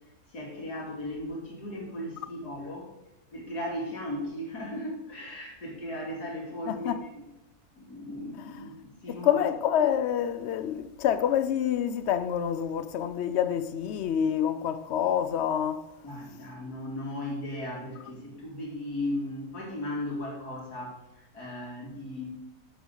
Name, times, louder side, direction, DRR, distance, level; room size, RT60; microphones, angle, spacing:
voice 1, 0.3-2.9 3.3-7.2 7.7-9.4 16.0-22.3, left 1 dB, 80° left, 3.3 m, -36 dB
voice 2, 6.7-7.0 8.4-8.6 9.1-15.9, left 9 dB, 60° left, 0.7 m, -27 dB
11.0 x 8.2 x 4.0 m
omnidirectional pair, 1.7 m